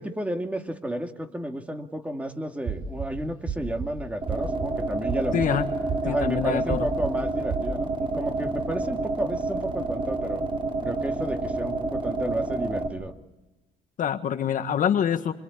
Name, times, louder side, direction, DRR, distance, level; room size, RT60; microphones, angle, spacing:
voice 1, 0.0-5.6 6.0-10.4 10.8-13.1, right 1 dB, 10° right, 5 dB, 2.3 m, -32 dB
sound 1, 2.7-3.1 3.5-3.9 4.3-4.7 5.1-5.5 5.9-6.3 6.7-7.1 7.5-7.7, right 6 dB, 50° right, 5.0 m, -31 dB
sound 2, 4.2-12.9, right 2 dB, 30° right, 5.6 m, -29 dB
voice 2, 5.3-5.7 6.0-6.9 14.0-15.3, left 9 dB, 50° left, 8 dB, 1.5 m, -25 dB
25.5 x 24.5 x 8.5 m, 0.98 s
cardioid pair, 110°, 17 cm